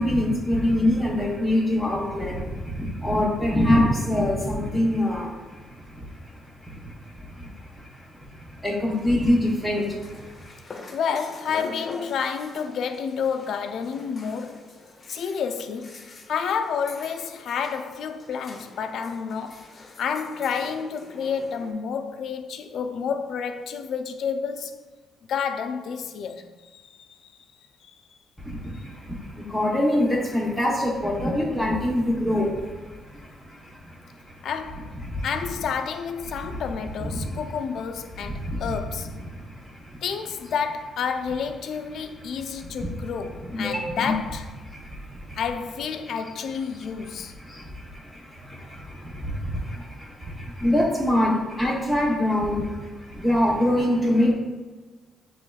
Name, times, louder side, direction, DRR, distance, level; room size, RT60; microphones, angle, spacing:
voice 1, 0.0-10.5 28.4-34.5 35.0-35.3 36.3-36.6 37.0-37.5 38.2-38.8 39.2-40.0 42.0-42.9 43.4-44.2 44.6-45.4 46.0-46.3 46.8-54.3, left 1 dB, 5° right, 0.8 m, -26 dB
sound 1, 8.9-21.7, left 2 dB, 40° left, 0.7 m, -44 dB
voice 2, 10.9-14.7 15.1-19.6 20.0-24.8 25.3-27.3 34.4-35.0 35.2-39.1 40.0-44.5 45.4-47.3, left 6 dB, 70° left, 0.4 m, -30 dB
6.8 x 3.1 x 2.3 m
cardioid pair, 90°, 0 cm